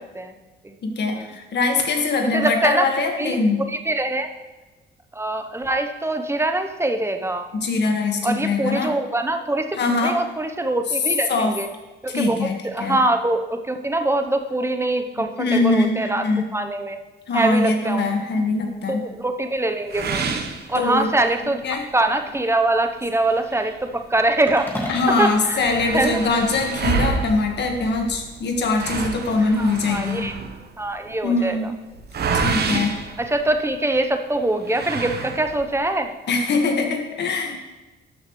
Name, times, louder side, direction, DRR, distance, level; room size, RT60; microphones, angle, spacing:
voice 1, 0.8-3.6 7.5-9.0 9.8-10.2 11.3-11.6 12.1-12.5 12.8-13.0 15.2-16.4 17.3-19.0 20.8-21.1 21.6-21.8 24.9-30.3 31.2-31.7 32.3-33.0 36.3-37.6, left 3 dB, 60° left, 3 dB, 1.6 m, -22 dB
voice 2, 2.2-2.9 3.2-3.4 3.7-4.3 5.1-7.5 8.2-11.7 12.0-12.4 12.7-16.2 16.5-17.0 17.3-18.1 18.9-20.2 20.7-21.6 21.9-24.9 25.2-25.7 25.9-26.2 29.6-30.3 30.8-31.6 33.2-36.1, right 2 dB, 15° right, 6 dB, 0.8 m, -23 dB
sound 1, 19.9-21.4 21.8-21.9 22.4-22.5 23.2-24.6 24.9-25.0 25.2-34.0 34.6-35.8, right 4 dB, 55° right, 1.0 m, -28 dB
sound 2, 24.5-26.8, equal, 10° left, 1.9 m, -34 dB
12.5 x 6.5 x 3.1 m, 1.1 s
cardioid pair, 90°, 20 cm